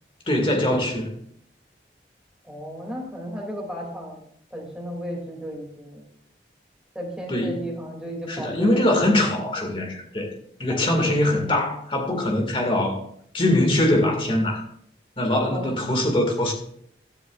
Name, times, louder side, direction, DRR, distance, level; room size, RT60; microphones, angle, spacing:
voice 1, 0.3-1.1 7.3-7.7 8.3-10.3 10.6-13.0 13.3-14.6 15.2-16.5, left 1 dB, 30° left, 2 dB, 2.2 m, -22 dB
voice 2, 2.4-4.3 4.5-6.0 6.9-8.9 9.2-9.7 10.7-11.2 15.4-15.7, equal, 5° right, -1 dB, 2.8 m, -35 dB
13.5 x 13.0 x 2.5 m, 0.68 s
head